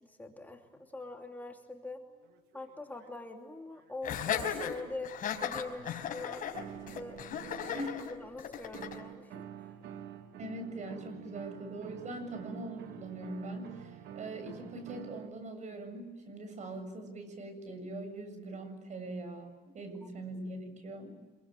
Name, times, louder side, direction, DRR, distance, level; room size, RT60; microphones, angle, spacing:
voice 1, 0.0-2.0 2.5-5.1 5.4-6.4 6.9-9.7 20.0-20.1, left 2 dB, 10° left, 2 dB, 2.9 m, -44 dB
sound 1, 1.1-1.2 2.2-3.3 3.7-4.7 6.5-8.1 8.7-15.3, right 10 dB, 80° right, 2.2 m, -48 dB
Laughter, 4.0-9.0, left 8 dB, 55° left, 4.8 m, -36 dB
voice 2, 10.4-21.2, right 1 dB, 45° right, 8 dB, 7.5 m, -42 dB
26.5 x 23.0 x 9.1 m, 1.3 s
cardioid pair, 110°, 17 cm